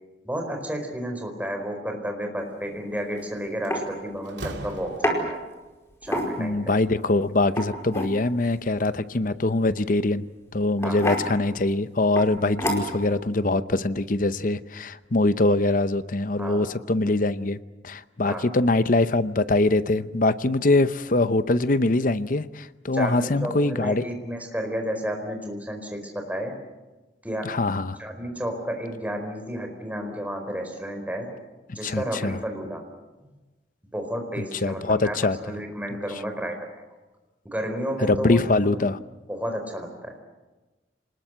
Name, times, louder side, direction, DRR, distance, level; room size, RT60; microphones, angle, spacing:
voice 1, 0.2-5.4 6.0-6.7 10.8-11.0 16.4-16.7 18.3-18.5 22.9-26.6 27.2-27.5 28.0-31.3 31.7-32.8 33.9-36.7 37.4-38.4 38.7-38.9 39.3-40.1, equal, 10° right, 4 dB, 4.5 m, -32 dB
Metal Can. pick up and put down, 3.0-3.2 3.7-3.9 5.0-5.2 6.0-6.6 7.4-8.1 9.8-10.0 10.8-11.3 12.2-12.3 12.6-13.1, equal, 15° left, 4.7 m, -27 dB
Slam, 3.0-3.2 3.6-5.5, right 1 dB, 85° right, 2.6 m, -39 dB
voice 2, 6.4-10.2 10.5-17.6 17.8-24.0 27.4-28.0 31.8-32.4 34.6-35.4 38.1-39.0, left 2 dB, 50° left, 14 dB, 0.8 m, -23 dB
27.5 x 20.5 x 7.9 m, 1.2 s
head